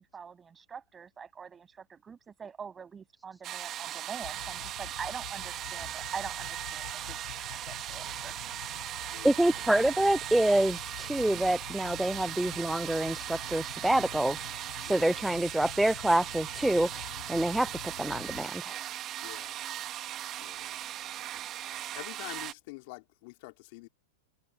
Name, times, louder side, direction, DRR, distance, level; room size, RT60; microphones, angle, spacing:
voice 1, 0.0-7.2 7.5-8.6, right 6 dB, 20° right, 6.9 m, -44 dB
sound 1, 3.4-22.5, right 12 dB, 35° right, 1.4 m, -38 dB
sound 2, 4.2-18.5, left 13 dB, 75° left, 7.3 m, -48 dB
voice 2, 9.2-18.9, right 1 dB, 5° right, 0.3 m, -27 dB
voice 3, 19.2-19.6 20.4-20.7 21.9-23.9, left 25 dB, 55° left, 2.9 m, -46 dB
hypercardioid pair, 125°, 0 cm